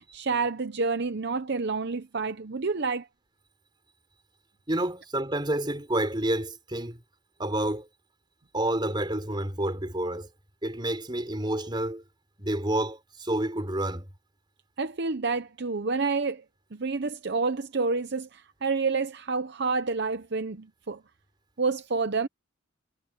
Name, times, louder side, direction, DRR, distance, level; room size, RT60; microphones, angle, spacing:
voice 1, 0.1-3.1 14.8-16.4 16.7-21.0 21.6-22.3, right 4 dB, 55° right, 0.8 m, -28 dB
voice 2, 4.7-7.0 7.4-7.9 8.5-10.3 10.6-12.0 12.4-14.1, right 1 dB, 20° right, 4.4 m, -29 dB
head